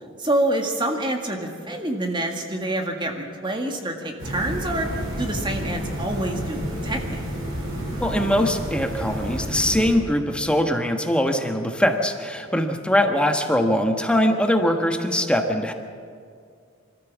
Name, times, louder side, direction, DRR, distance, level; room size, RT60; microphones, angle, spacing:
voice 1, 0.2-6.6 6.8-7.2, right 1 dB, 25° right, 3 dB, 1.9 m, -27 dB
sound 1, 4.2-9.9, equal, 80° right, 5.3 m, -30 dB
voice 2, 8.0-15.7, equal, 5° left, 5 dB, 1.3 m, -22 dB
25.5 x 14.0 x 7.3 m, 2.3 s
head